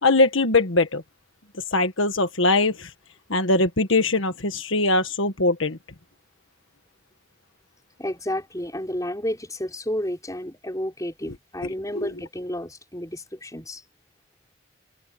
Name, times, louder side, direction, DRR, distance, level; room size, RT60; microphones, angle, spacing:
voice 1, 0.0-1.0 1.7-2.9 3.3-5.8 11.6-11.7 11.9-12.1, left 2 dB, 70° left, 1.6 m, -21 dB
voice 2, 8.0-13.8, left 1 dB, 15° left, 5.9 m, -31 dB
head